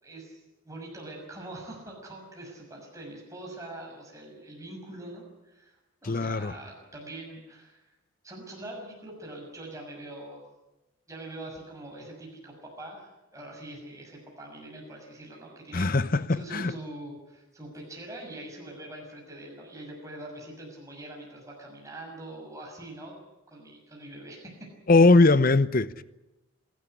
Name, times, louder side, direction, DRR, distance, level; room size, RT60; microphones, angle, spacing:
voice 1, 0.0-5.8 6.0-8.0 8.2-10.5 11.1-23.1 23.5-24.7, right 1 dB, 15° right, 6.5 m, -43 dB
voice 2, 6.0-6.5 15.7-16.7 24.9-26.0, left 3 dB, 40° left, 0.7 m, -21 dB
26.5 x 12.5 x 9.9 m
head